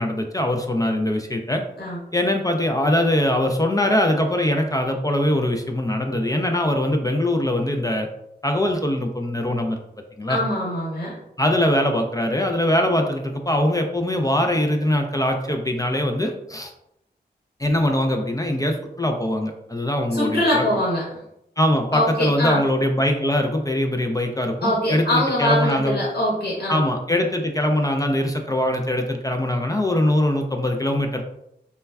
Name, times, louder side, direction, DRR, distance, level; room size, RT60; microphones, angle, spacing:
voice 1, 0.0-1.6 2.1-8.1 8.4-9.8 10.2-10.4 11.4-16.7 17.6-20.7 21.6-26.0 26.7-31.3, left 1 dB, 20° left, 3 dB, 0.3 m, -22 dB
voice 2, 10.3-11.1 20.1-21.0 21.9-22.6 24.6-26.8, left 1 dB, 65° left, -6 dB, 1.0 m, -23 dB
3.1 x 2.2 x 2.3 m, 0.80 s
wide cardioid pair, 55°, 18 cm